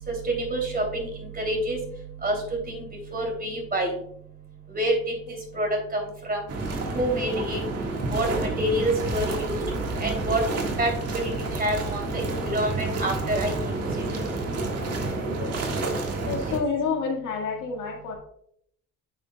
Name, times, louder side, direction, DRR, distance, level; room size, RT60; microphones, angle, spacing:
voice 1, 0.5-0.8 1.4-1.8 2.2-2.3 3.1-3.9 4.7-4.9 5.6-5.7 6.3-6.4 6.9-7.6 8.1-8.3 8.6-9.6 10.0-10.4 10.8-10.9 11.6-12.2 12.5-13.5 16.5-16.6, right 1 dB, 30° right, 1 dB, 2.9 m, -26 dB
sound 1, 6.5-16.6, right 2 dB, 55° right, 1.7 m, -29 dB
voice 2, 16.2-18.1, left 5 dB, 90° left, 1 dB, 1.7 m, -29 dB
9.1 x 5.8 x 2.3 m, 0.69 s
cardioid pair, 90°, 30 cm